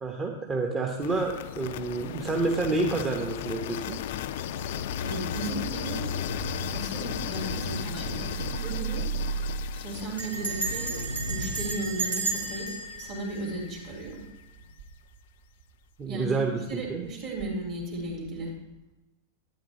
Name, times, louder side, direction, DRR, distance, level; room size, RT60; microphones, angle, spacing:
voice 1, 0.0-4.0 16.0-16.6 16.9-17.0, right 3 dB, 20° right, 0 dB, 1.0 m, -28 dB
sound 1, 1.0-12.9, left 12 dB, 55° left, 0.4 m, -36 dB
sound 2, 3.9-14.2 14.6-14.9, right 2 dB, 85° right, 0.6 m, -36 dB
voice 2, 5.0-6.1 6.7-9.0 9.7-11.0 11.3-12.7 13.0-14.2 16.1-16.3 16.7-18.5, right 2 dB, 45° right, -1 dB, 3.1 m, -35 dB
Bell, 10.2-14.3, right 3 dB, 70° right, 1.8 m, -34 dB
12.0 x 9.2 x 2.8 m, 1.0 s
figure-of-eight pair, 90°, 0 cm